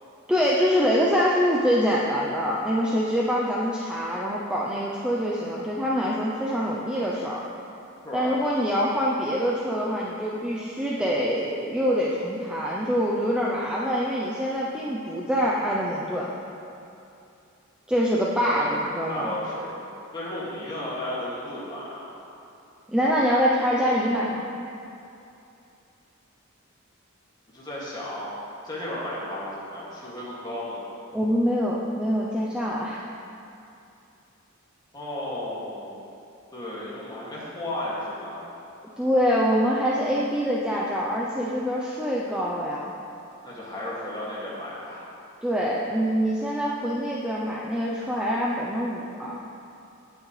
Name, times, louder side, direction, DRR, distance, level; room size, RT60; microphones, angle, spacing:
voice 1, 0.3-7.4 8.1-16.3 17.9-19.4 22.9-24.5 31.1-33.1 39.0-42.9 45.4-49.4, equal, 5° right, -5 dB, 0.6 m, -25 dB
voice 2, 8.0-8.4 18.4-18.6 19.1-19.7 20.1-22.1 27.5-30.8 34.9-36.1 36.5-38.4 43.4-45.0, left 1 dB, 20° left, -8 dB, 2.3 m, -34 dB
17.5 x 6.2 x 3.3 m, 2.7 s
head